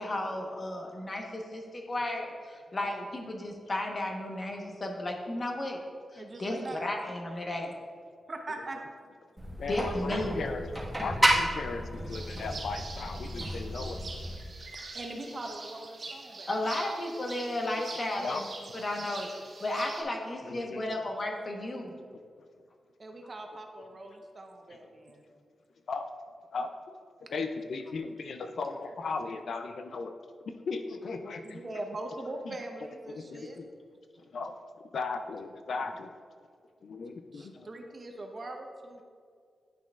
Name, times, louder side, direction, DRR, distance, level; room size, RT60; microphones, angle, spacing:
voice 1, 0.0-5.8 6.1-7.7 9.7-10.4 16.5-18.5 18.7-19.3 19.6-21.9, left 1 dB, 40° left, 1 dB, 1.1 m, -34 dB
voice 2, 6.1-6.9 8.3-8.8 14.6-16.5 23.0-25.2 31.4-33.6 37.3-39.0, right 2 dB, 40° right, 3 dB, 0.9 m, -41 dB
sound 1, 9.4-14.4, right 1 dB, 5° right, 1.5 m, -31 dB
voice 3, 9.6-10.7 11.0-14.0 15.3-15.4 18.2-18.8 20.5-20.9 25.9-26.0 26.5-26.7 27.3-30.1 30.7-31.6 32.5-32.6 33.2-33.7 34.3-34.5 34.9-36.1 36.8-37.7, left 4 dB, 70° left, 7 dB, 0.4 m, -36 dB
sound 2, 12.1-20.0, right 3 dB, 60° right, 1.3 m, -44 dB
10.5 x 6.0 x 2.4 m, 2.1 s
cardioid pair, 85°, 0 cm